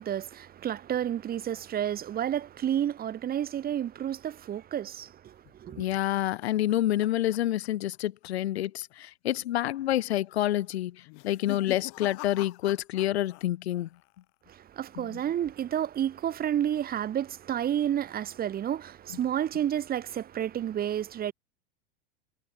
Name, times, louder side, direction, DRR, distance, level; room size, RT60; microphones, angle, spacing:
voice 1, 0.0-5.9 14.5-21.3, right 10 dB, 30° right, 2.1 m, -30 dB
sound 1, 5.5-8.0 8.2-8.6 8.9-9.0 9.8-10.2 11.0-13.5 13.7-14.3, left 40 dB or more, 60° left, 5.3 m, -45 dB
voice 2, 5.8-13.9 15.0-15.2, left 13 dB, 85° left, 1.6 m, -28 dB
supercardioid pair, 120°, 31 cm